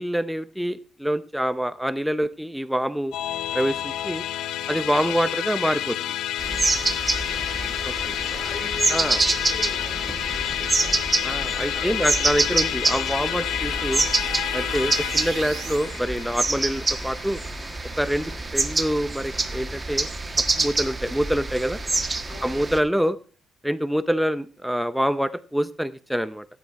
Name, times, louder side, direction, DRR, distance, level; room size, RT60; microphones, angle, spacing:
voice 1, 0.0-3.1 3.5-4.2 4.7-6.0 7.8-7.9 8.9-9.2 11.2-14.0 14.5-17.4 18.0-20.1 20.4-21.8 22.4-23.2 23.6-26.5, equal, ahead, 13 dB, 0.6 m, -26 dB
Musical instrument, 3.1-18.6, left 12 dB, 85° left, 0.6 m, -30 dB
sound 1, 6.4-22.8, right 3 dB, 20° right, 1.4 m, -26 dB
voice 2, 7.5-11.0 11.6-12.1 14.8-15.0 18.2-18.4 22.3-22.7, left 3 dB, 60° left, 2 dB, 4.5 m, -42 dB
sound 2, 12.0-15.9, right 8 dB, 65° right, 1.4 m, -40 dB
15.5 x 9.4 x 4.6 m, 0.37 s
cardioid pair, 90°, 0 cm